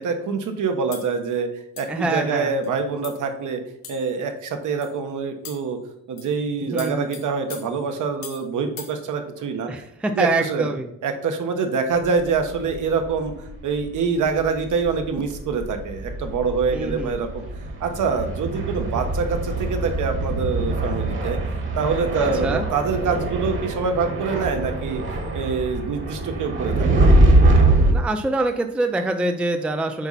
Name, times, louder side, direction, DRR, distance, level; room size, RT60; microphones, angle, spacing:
voice 1, 0.0-1.5 1.8-3.6 3.9-5.8 6.1-9.7 10.2-10.7 11.0-17.4 17.8-21.4 21.8-25.0 25.3-27.0, right 5 dB, 60° right, 5 dB, 1.3 m, -25 dB
Clanking Spoon, 0.9-1.1 1.8-2.0 2.6-2.7 3.0-3.3 3.8-4.2 4.8-5.0 5.4-5.7 6.2-6.4 6.8-8.5 8.8-9.0, left 7 dB, 80° left, 2.3 m, -40 dB
voice 2, 1.9-2.5 6.7-7.2 9.7-10.9 16.7-17.2 22.1-22.7 27.9-30.1, right 2 dB, 5° right, 6 dB, 0.4 m, -25 dB
sound 1, 12.1-13.5 13.8-13.9 14.2-27.9, right 2 dB, 35° right, 1.5 m, -23 dB
8.0 x 5.6 x 4.1 m, 0.82 s
cardioid pair, 160°, 34 cm